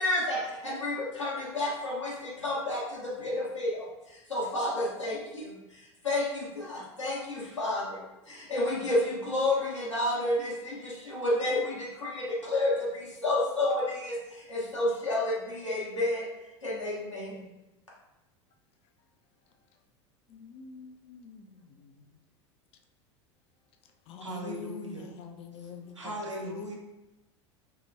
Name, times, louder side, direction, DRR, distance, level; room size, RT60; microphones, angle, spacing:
voice 1, 0.0-16.3 16.6-17.4, left 1 dB, 90° left, -6 dB, 1.2 m, -30 dB
voice 2, 20.3-22.1 24.1-26.2 26.4-26.7, left 5 dB, 40° left, 5 dB, 0.5 m, -45 dB
voice 3, 24.2-25.1 26.0-26.7, right 1 dB, 85° right, -1 dB, 0.8 m, -38 dB
4.7 x 2.9 x 2.7 m, 0.98 s
figure-of-eight pair, 80°, 15 cm